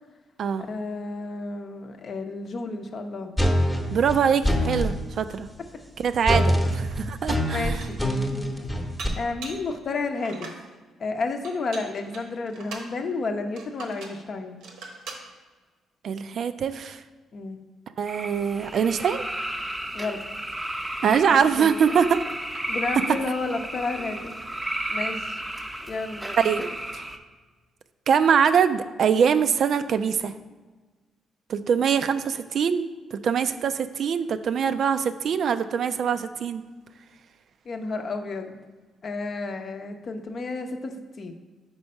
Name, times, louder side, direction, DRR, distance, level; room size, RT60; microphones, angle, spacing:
voice 1, 0.6-3.3 7.4-8.0 8.3-8.5 9.2-10.7 11.0-14.6 17.3-17.6 19.9-20.2 21.3-22.0 22.7-24.4 24.9-25.4 25.9-26.5 37.7-38.6 39.0-41.3, left 3 dB, 50° left, 5 dB, 0.7 m, -31 dB
sound 1, 3.4-5.0 6.3-9.1, equal, 10° left, 0.9 m, -24 dB
voice 2, 3.9-5.5 6.0-7.8 16.0-17.0 18.0-19.2 21.0-22.2 26.4-26.6 28.1-30.3 31.5-36.6, right 7 dB, 60° right, 11 dB, 0.3 m, -23 dB
Dishes pots and pans, 6.9-7.0 7.5-8.1 9.0-9.7 10.1-10.6 11.4-12.9 13.6-14.2 14.6-15.3, right 3 dB, 85° right, 1.0 m, -41 dB
sound 2, 18.1-27.2, right 1 dB, 10° right, 0.6 m, -33 dB
4.6 x 4.2 x 5.4 m, 1.3 s
cardioid pair, 90°, 0 cm